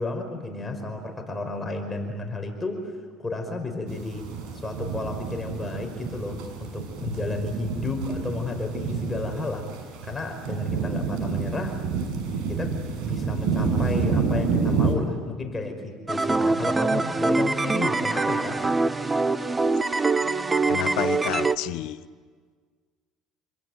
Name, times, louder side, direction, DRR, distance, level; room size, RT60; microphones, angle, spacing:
voice 1, 0.0-2.9 3.2-4.3 4.6-9.7 10.0-11.8 12.4-12.8 13.0-18.8, left 2 dB, 15° left, 5.1 m, -32 dB
sound 1, 3.9-14.9, right 5 dB, 75° right, 6.4 m, -28 dB
sound 2, 16.1-21.6, right 3 dB, 20° right, 1.0 m, -24 dB
voice 2, 20.7-22.0, left 16 dB, 75° left, 1.0 m, -30 dB
29.0 x 22.0 x 9.2 m
supercardioid pair, 95°, 0 cm